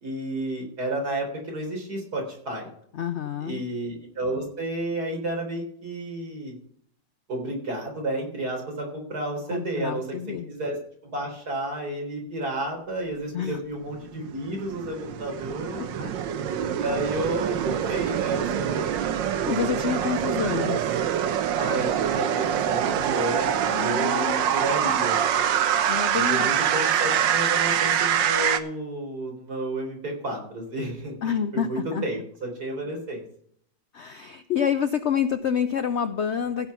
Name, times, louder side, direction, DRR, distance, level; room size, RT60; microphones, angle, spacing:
voice 1, 0.0-2.7 3.4-6.5 7.3-10.2 10.4-10.8 11.0-15.9 16.7-18.9 21.5-25.5 26.3-31.1 31.5-33.2, right 1 dB, 55° right, 1 dB, 4.3 m, -31 dB
voice 2, 2.9-3.6 9.5-10.5 13.3-13.6 15.8-16.1 16.9-17.0 19.2-20.8 23.7-24.5 25.9-26.5 31.2-32.1 33.9-36.7, left 8 dB, 85° left, 11 dB, 0.6 m, -28 dB
sound 1, 14.0-28.6, right 9 dB, 85° right, 1.6 m, -25 dB
15.5 x 6.0 x 5.7 m, 0.64 s
omnidirectional pair, 2.0 m